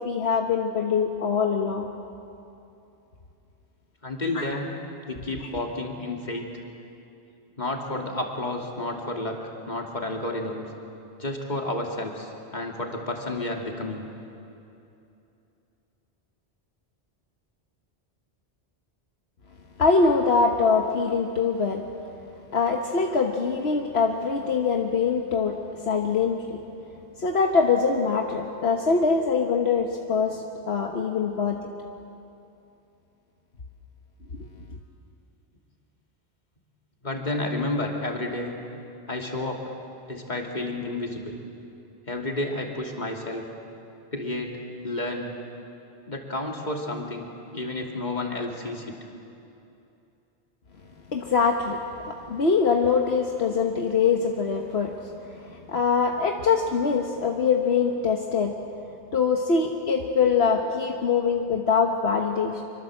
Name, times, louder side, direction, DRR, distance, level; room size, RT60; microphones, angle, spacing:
voice 1, 0.0-1.9 4.3-4.5 19.8-21.8 22.5-25.6 25.8-26.6 27.2-31.6 51.1-51.8 52.1-55.0 55.3-58.5 59.1-62.6, left 5 dB, 70° left, 2 dB, 1.5 m, -23 dB
voice 2, 4.0-4.7 5.1-6.6 7.6-9.4 9.6-10.7 11.2-14.0 37.0-38.6 39.1-39.6 40.1-41.4 42.1-43.5 44.1-45.3 46.1-47.3 47.5-49.0, left 2 dB, 40° left, 1 dB, 2.9 m, -31 dB
26.0 x 24.0 x 7.7 m, 2.8 s
omnidirectional pair, 1.1 m